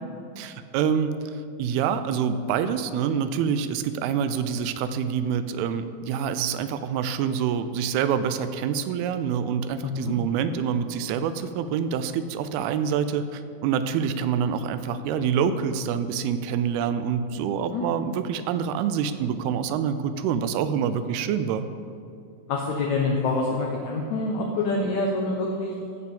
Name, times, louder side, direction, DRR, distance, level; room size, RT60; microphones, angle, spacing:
voice 1, 0.4-1.1 1.6-21.7, right 7 dB, 85° right, 11 dB, 2.5 m, -26 dB
voice 2, 9.8-10.1 17.7-17.9 22.5-25.7, left 3 dB, 75° left, -1 dB, 1.7 m, -26 dB
14.0 x 4.7 x 7.0 m, 2.5 s
omnidirectional pair, 4.5 m